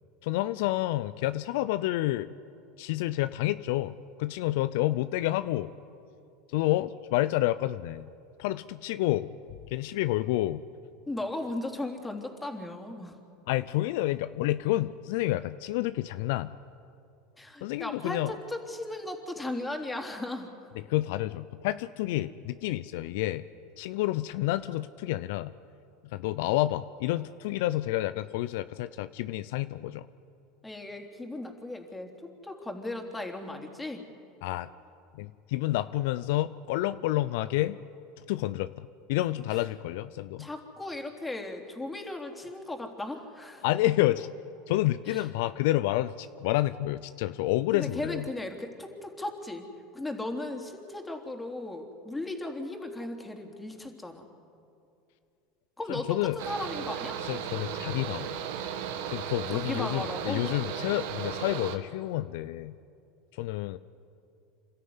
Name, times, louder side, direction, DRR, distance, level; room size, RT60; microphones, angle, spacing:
voice 1, 0.2-2.3 2.8-3.9 4.2-5.7 6.5-8.1 8.4-9.3 9.7-10.6 13.5-16.5 17.6-18.3 20.9-23.4 23.8-25.5 26.1-30.1 34.4-34.7 35.2-37.8 38.3-40.5 43.6-44.3 44.7-48.2 55.9-56.4 57.2-58.4 59.1-62.7 63.4-63.8, left 16 dB, 70° left, 14 dB, 0.5 m, -29 dB
voice 2, 11.1-13.2 17.4-20.5 30.6-34.0 39.5-39.6 40.4-43.6 45.1-45.3 47.7-49.6 49.9-54.3 55.8-57.2 59.5-60.5, left 2 dB, 10° left, 3 dB, 3.3 m, -36 dB
Mechanical fan, 56.4-61.8, right 8 dB, 75° right, 1.6 m, -35 dB
27.5 x 13.5 x 9.7 m, 2.5 s
hypercardioid pair, 90°, 0 cm